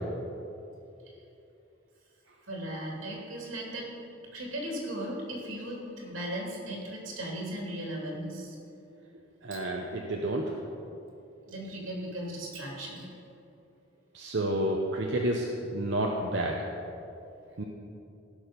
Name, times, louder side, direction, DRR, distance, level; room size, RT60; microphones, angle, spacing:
voice 1, 2.5-8.6 9.5-9.6 11.5-13.1 17.5-17.6, right 1 dB, 85° right, -2 dB, 2.9 m, -37 dB
voice 2, 9.4-10.5 14.1-16.6 17.6-17.7, right 1 dB, 65° right, 0 dB, 0.8 m, -30 dB
16.5 x 6.3 x 5.2 m, 2.8 s
head